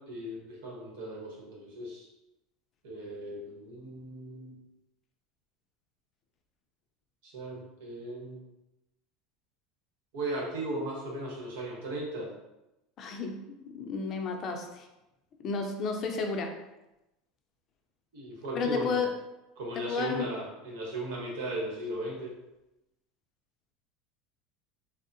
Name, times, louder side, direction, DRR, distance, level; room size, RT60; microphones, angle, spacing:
voice 1, 0.0-2.1 2.8-4.6 7.2-8.4 10.1-12.3 18.1-19.0 19.6-22.3, right 1 dB, 80° right, -3 dB, 1.0 m, -37 dB
voice 2, 13.0-14.9 15.4-16.5 18.5-19.1 19.8-20.3, left 4 dB, 40° left, 3 dB, 0.4 m, -32 dB
3.4 x 2.0 x 2.6 m, 0.94 s
supercardioid pair, 125°, 0 cm